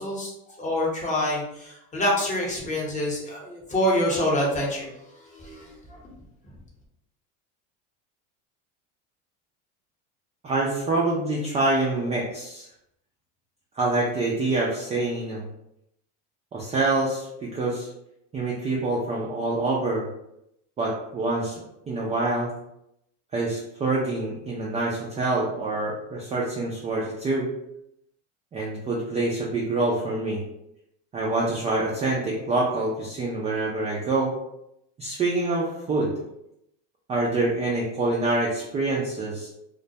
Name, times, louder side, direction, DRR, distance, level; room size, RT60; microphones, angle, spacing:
voice 1, 0.0-6.0, left 1 dB, 20° left, -3 dB, 0.8 m, -27 dB
voice 2, 10.4-12.7 13.7-15.4 16.5-17.9 18.3-20.1 20.8-22.5 23.3-27.5 28.5-30.4 31.1-34.3 35.0-36.1 37.1-39.5, right 2 dB, 20° right, -4 dB, 0.3 m, -26 dB
2.1 x 2.1 x 2.7 m, 0.80 s
supercardioid pair, 110°, 36 cm